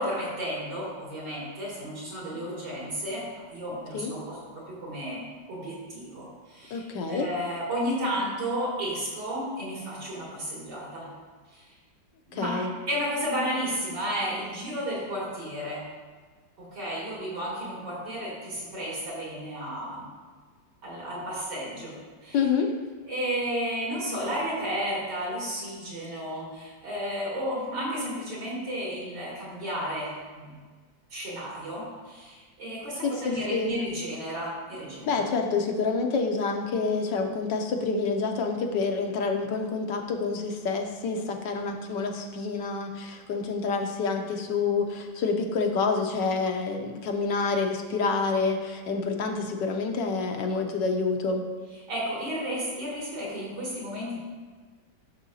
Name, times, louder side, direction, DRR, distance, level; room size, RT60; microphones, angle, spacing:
voice 1, 0.0-4.4 4.7-5.2 5.5-11.1 11.5-11.6 12.3-15.8 16.6-20.1 20.8-22.0 22.2-22.4 23.0-30.6 31.1-35.2 51.9-54.2, equal, 65° right, -6 dB, 3.2 m, -32 dB
voice 2, 6.7-7.3 12.3-12.7 22.3-22.7 33.0-33.7 35.1-51.4, left 4 dB, 75° left, 3 dB, 1.3 m, -28 dB
11.0 x 6.5 x 2.7 m, 1.5 s
omnidirectional pair, 2.0 m